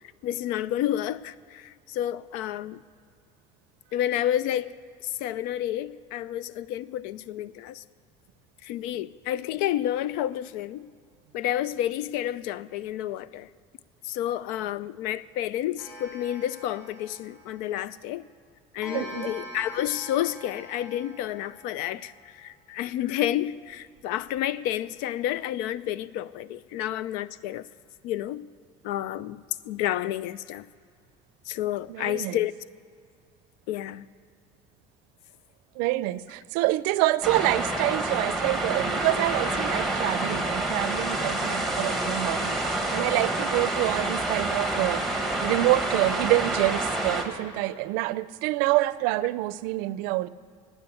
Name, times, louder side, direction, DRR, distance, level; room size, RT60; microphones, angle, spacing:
voice 1, 0.2-2.8 3.9-4.7 5.0-7.8 8.6-10.9 11.3-13.5 14.0-18.2 18.7-27.7 28.0-28.5 28.8-30.7 31.5-32.5 33.7-34.1, left 12 dB, 75° left, 18 dB, 0.5 m, -30 dB
Clock, 15.8-18.0 18.8-22.2, right 1 dB, 20° left, 4.1 m, -44 dB
voice 2, 18.9-19.3 31.9-32.4 35.8-45.1 45.4-50.3, right 18 dB, 75° right, 17 dB, 0.5 m, -27 dB
sound 1, 37.2-47.2, right 2 dB, ahead, 1.2 m, -28 dB
15.5 x 9.2 x 8.4 m, 2.3 s
cardioid pair, 175°, 15 cm